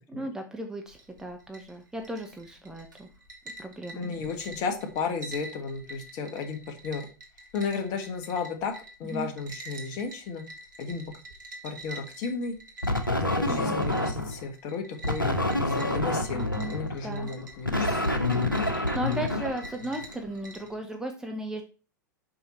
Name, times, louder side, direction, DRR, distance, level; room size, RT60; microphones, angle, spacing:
voice 1, 0.1-3.1 3.6-4.1 9.0-9.3 13.5-14.0 16.3-16.8 17.0-17.3 18.3-21.6, right 1 dB, 5° right, 3 dB, 0.8 m, -36 dB
sound 1, 0.9-20.8, right 1 dB, 70° right, 1.8 m, -47 dB
voice 2, 3.9-7.1 7.5-8.7 9.0-10.4 10.8-11.0 11.6-12.6 13.2-16.4 16.7-18.2, left 5 dB, 35° left, 6 dB, 1.4 m, -33 dB
sound 2, 12.8-14.4 15.0-20.2, left 2 dB, 90° left, 1.0 m, -28 dB
5.5 x 5.4 x 4.3 m, 0.34 s
figure-of-eight pair, 95°, 11 cm